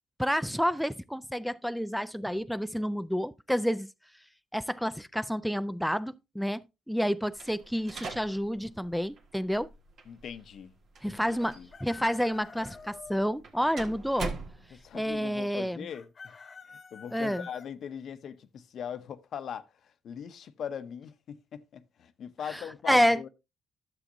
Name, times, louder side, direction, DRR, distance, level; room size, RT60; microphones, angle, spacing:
voice 1, 0.2-3.9 4.5-9.7 11.0-14.3 14.9-15.9 17.1-17.5 22.5-23.3, equal, ahead, 0.3 m, -29 dB
sound 1, 7.3-15.2, right 3 dB, 65° right, 1.5 m, -43 dB
voice 2, 10.1-10.7 11.1-11.7 14.7-16.3 16.7-23.3, left 8 dB, 65° left, 0.7 m, -41 dB
Chicken rooster, 11.4-13.2 15.9-17.7, left 5 dB, 40° left, 1.0 m, -48 dB
11.5 x 7.1 x 2.6 m
cardioid pair, 85°, 0 cm